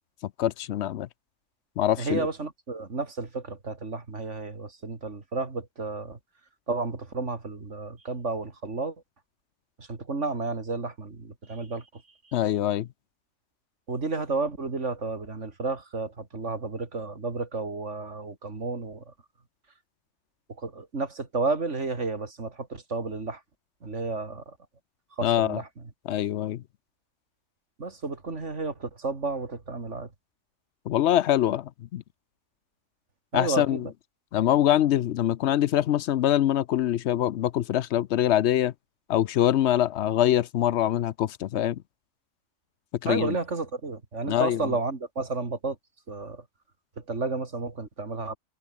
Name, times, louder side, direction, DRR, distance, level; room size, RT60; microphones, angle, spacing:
voice 1, 0.4-1.1 1.8-2.3 12.3-12.9 25.2-25.6 26.1-26.6 30.9-32.0 33.3-33.8 34.3-38.7 39.1-41.8 43.0-43.4 44.3-44.6, left 11 dB, 70° left, 0.9 m, -24 dB
voice 2, 2.0-6.2 6.7-9.0 9.8-12.4 13.9-19.1 20.5-23.4 23.8-24.6 25.2-25.9 27.8-30.1 33.3-33.9 43.0-45.8 46.1-46.4 47.0-48.4, right 3 dB, 80° right, 3.2 m, -32 dB
omnidirectional pair, 1.2 m